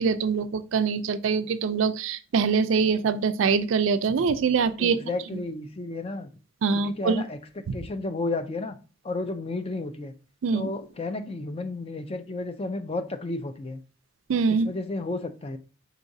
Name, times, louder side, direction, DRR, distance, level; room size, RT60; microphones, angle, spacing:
voice 1, 0.0-5.1 6.6-7.2 7.7-7.8 10.4-10.7 14.3-14.7, right 5 dB, 80° right, 0.4 m, -24 dB
voice 2, 4.8-6.3 6.7-8.8 9.0-10.1 10.5-13.8 14.5-15.6, left 2 dB, 30° left, 0.4 m, -32 dB
4.8 x 3.8 x 2.6 m
head